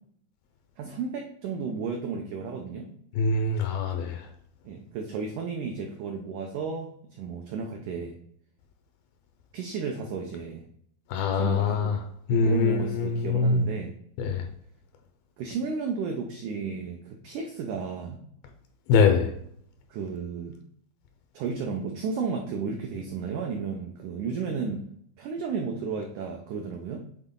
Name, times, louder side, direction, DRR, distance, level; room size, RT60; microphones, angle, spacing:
voice 1, 0.8-2.9 4.6-8.2 9.5-10.7 11.3-11.9 12.3-14.0 15.4-18.2 19.9-20.6 21.3-24.8 25.2-27.0, right 5 dB, 90° right, 2 dB, 1.7 m, -33 dB
voice 2, 3.2-4.2 11.1-12.0 12.3-13.6 14.2-14.4 18.9-19.3, left 4 dB, 80° left, 6 dB, 2.3 m, -23 dB
7.7 x 4.0 x 3.7 m, 0.68 s
omnidirectional pair, 4.4 m